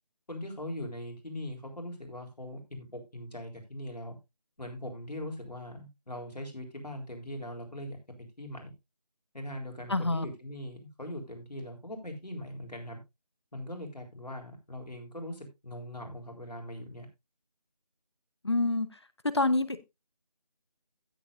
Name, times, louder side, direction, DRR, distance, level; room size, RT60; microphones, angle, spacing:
voice 1, 0.3-4.2 4.6-8.7 9.3-13.0 13.5-17.1, left 1 dB, 80° left, 3.9 m, -41 dB
voice 2, 9.9-10.2 18.4-18.9 19.2-19.9, left 2 dB, 40° left, 0.9 m, -27 dB
16.0 x 7.2 x 2.6 m
figure-of-eight pair, 170°, 21 cm